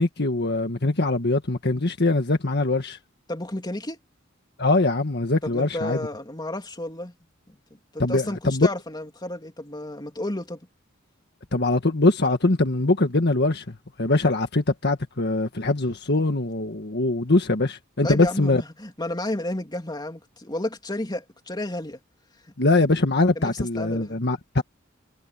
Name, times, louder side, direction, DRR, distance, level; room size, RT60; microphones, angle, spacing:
voice 1, 0.0-3.0 4.6-6.1 8.0-8.7 11.5-18.6 22.6-24.6, left 2 dB, 55° left, 1.7 m, -22 dB
voice 2, 3.3-4.0 5.4-7.1 7.5-7.6 7.9-10.6 18.0-22.0 23.3-24.2, left 1 dB, 20° left, 3.2 m, -32 dB
head